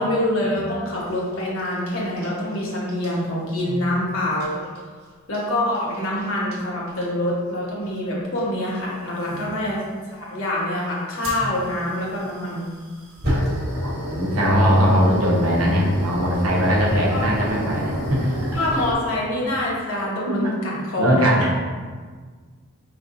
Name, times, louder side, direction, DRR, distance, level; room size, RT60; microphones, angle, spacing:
voice 1, 0.0-4.6 5.3-9.8 10.1-12.7 16.8-17.2 18.5-21.2, left 1 dB, 60° left, -5 dB, 1.1 m, -25 dB
sound 1, 1.0-2.6 2.9-3.1 4.3-4.8 5.3-5.5 5.7-6.2 6.5-6.6 6.9-7.3 8.4-8.5 9.2-9.4 11.2-18.9, equal, 45° right, 1.3 m, -30 dB
voice 2, 13.8-18.5 20.3-20.4 20.7-21.6, equal, 80° right, -3 dB, 1.0 m, -20 dB
5.0 x 3.4 x 2.6 m, 1.5 s
head